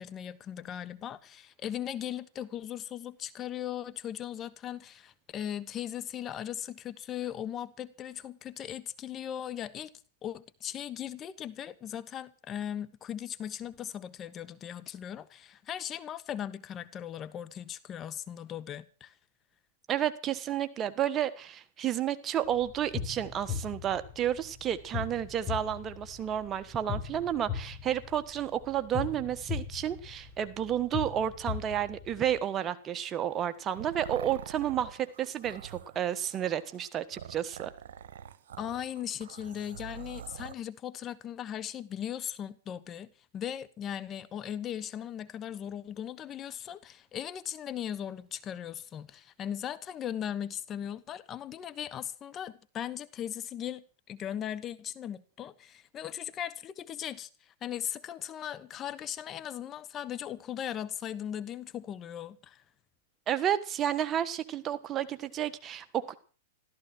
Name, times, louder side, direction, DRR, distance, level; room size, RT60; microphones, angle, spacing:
voice 1, 0.0-9.9 10.2-19.2 38.6-62.6, left 10 dB, 30° left, 1.1 m, -38 dB
voice 2, 19.9-37.7 63.3-66.2, right 10 dB, 30° right, 1.4 m, -31 dB
sound 1, 22.4-32.4, left 7 dB, 10° left, 5.1 m, -39 dB
sound 2, 33.3-40.5, right 9 dB, 65° right, 1.4 m, -46 dB
14.5 x 13.5 x 6.3 m
hypercardioid pair, 110°, 0 cm